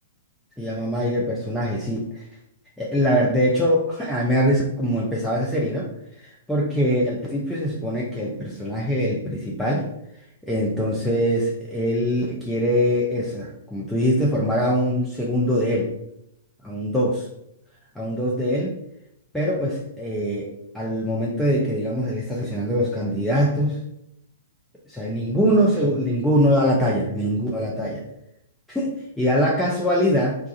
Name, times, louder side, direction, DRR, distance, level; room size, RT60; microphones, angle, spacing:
voice 1, 0.6-2.3 2.8-5.9 6.2-9.9 10.4-15.9 16.6-17.3 18.0-18.7 19.3-23.8 24.9-28.1 28.7-30.4, equal, 5° left, -5 dB, 0.5 m, -23 dB
2.4 x 2.3 x 4.0 m, 0.79 s
figure-of-eight pair, 110°, 0 cm